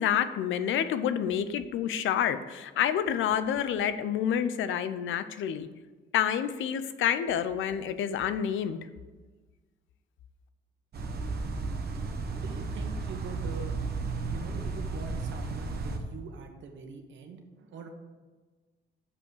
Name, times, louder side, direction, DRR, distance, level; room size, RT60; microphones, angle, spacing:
voice 1, 0.0-5.7 6.1-8.8, left 9 dB, 75° left, 12 dB, 0.6 m, -28 dB
sound 1, 10.9-16.0, right 3 dB, 55° right, 1.2 m, -33 dB
voice 2, 12.3-13.7 14.2-17.9, right 5 dB, 70° right, 4 dB, 1.3 m, -44 dB
7.0 x 5.4 x 6.5 m, 1.3 s
cardioid pair, 90°, 20 cm